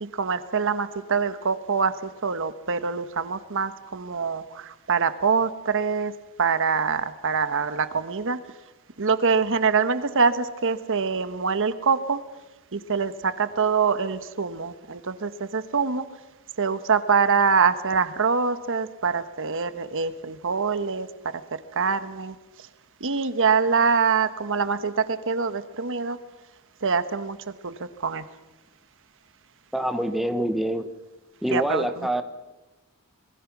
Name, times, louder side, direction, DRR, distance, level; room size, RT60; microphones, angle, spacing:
voice 1, 0.0-6.1 6.4-8.4 9.0-12.2 12.7-16.1 16.6-22.3 23.0-26.2 26.8-27.4 27.6-27.7 28.0-28.2 31.5-32.2, right 5 dB, 60° right, 12 dB, 1.2 m, -24 dB
voice 2, 29.7-30.9 31.4-32.2, right 1 dB, ahead, 8 dB, 1.0 m, -25 dB
26.5 x 21.5 x 6.0 m, 1.1 s
head